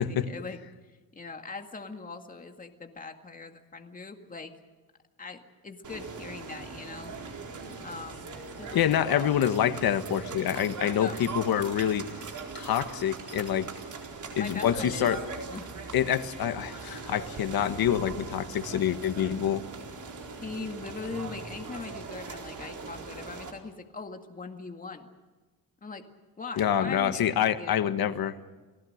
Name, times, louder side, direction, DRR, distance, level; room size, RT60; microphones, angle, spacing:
voice 1, 0.0-4.5 5.2-7.1 7.8-8.3 8.6-8.9 10.9-11.3 14.4-15.1 15.5-15.7 20.3-25.1 25.8-26.1 26.4-27.9, left 4 dB, 20° left, 4 dB, 2.0 m, -41 dB
sound 1, 5.8-23.5, right 4 dB, 55° right, 4.2 m, -40 dB
voice 2, 8.7-12.0 12.5-13.7 14.3-15.2 15.9-19.6 26.6-28.3, left 10 dB, 80° left, 9 dB, 1.5 m, -26 dB
30.0 x 19.0 x 6.6 m, 1.3 s
wide cardioid pair, 155°, 36 cm